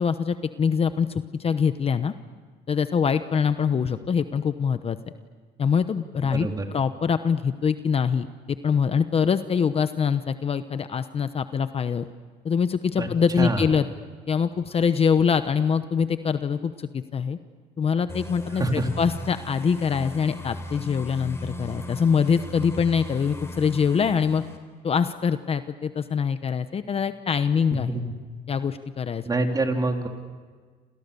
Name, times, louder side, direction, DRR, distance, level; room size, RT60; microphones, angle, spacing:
voice 1, 0.0-2.1 2.7-5.0 5.6-6.5 6.7-8.3 8.6-12.0 12.4-13.9 14.3-17.4 17.8-24.4 24.8-28.0 28.5-29.2, left 6 dB, 35° left, 11 dB, 1.0 m, -24 dB
voice 2, 6.3-6.7 13.0-13.1 13.4-13.7 18.5-18.9 27.7-28.1 29.2-30.1, right 2 dB, 20° right, 3 dB, 3.4 m, -26 dB
sound 1, 18.1-24.6, left 1 dB, 15° left, 4.4 m, -37 dB
29.5 x 27.5 x 6.9 m, 1.5 s
cardioid pair, 110°, 17 cm